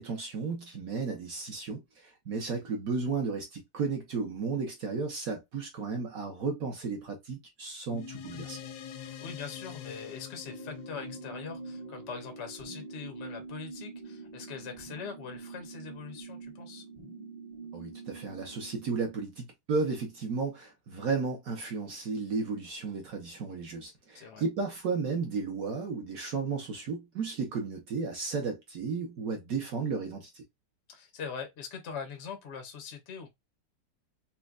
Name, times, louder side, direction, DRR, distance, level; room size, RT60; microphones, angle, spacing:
voice 1, 0.0-8.6 17.7-30.4, right 4 dB, 65° right, 0.9 m, -34 dB
sound 1, 7.9-12.7, left 9 dB, 90° left, 0.9 m, -45 dB
voice 2, 9.0-16.9 24.1-24.4 30.9-33.3, left 6 dB, 70° left, 0.6 m, -42 dB
sound 2, 10.4-19.1, right 3 dB, 45° right, 0.4 m, -45 dB
4.2 x 2.1 x 2.3 m
omnidirectional pair, 2.4 m